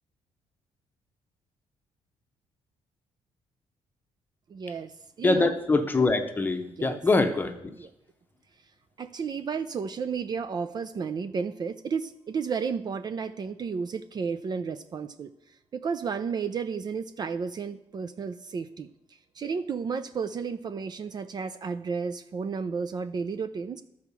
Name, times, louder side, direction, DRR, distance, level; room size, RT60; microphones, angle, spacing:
voice 1, 4.5-5.5 6.8-7.0 7.8-7.9 9.0-18.9 19.3-23.8, right 5 dB, 40° right, 11 dB, 0.4 m, -32 dB
voice 2, 5.2-7.6, left 3 dB, 15° left, 6 dB, 1.0 m, -24 dB
12.0 x 4.8 x 6.9 m, 0.81 s
cardioid pair, 120°, 11 cm